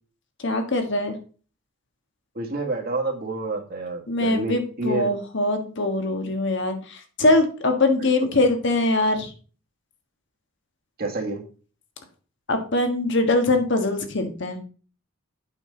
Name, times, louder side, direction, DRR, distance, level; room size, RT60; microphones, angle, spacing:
voice 1, 0.4-1.1 4.1-9.3 12.5-14.6, left 2 dB, 55° left, 6 dB, 1.4 m, -22 dB
voice 2, 2.3-5.1 8.0-8.4 11.0-11.4, right 2 dB, 45° right, 2 dB, 1.6 m, -29 dB
8.8 x 6.2 x 3.8 m, 0.39 s
head